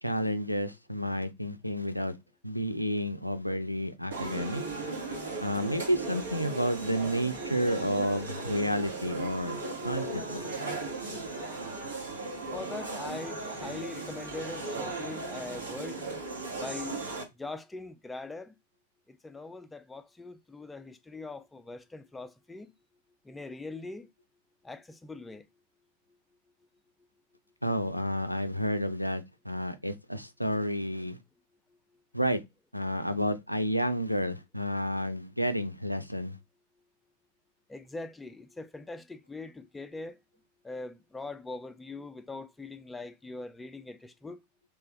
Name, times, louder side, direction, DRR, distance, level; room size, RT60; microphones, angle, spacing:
voice 1, 0.0-2.1 2.4-4.6 5.4-10.5 27.6-31.2 32.1-32.4 32.7-36.4, equal, 90° left, 0.4 m, -31 dB
sound 1, 4.1-17.2, right 3 dB, 70° right, 1.4 m, -37 dB
voice 2, 12.5-16.0 16.5-17.0 17.4-18.6 19.1-22.7 23.3-24.1 24.6-25.5 37.7-40.2 40.6-44.4, left 3 dB, 10° left, 0.4 m, -42 dB
3.4 x 3.3 x 3.0 m
figure-of-eight pair, 90°, 0 cm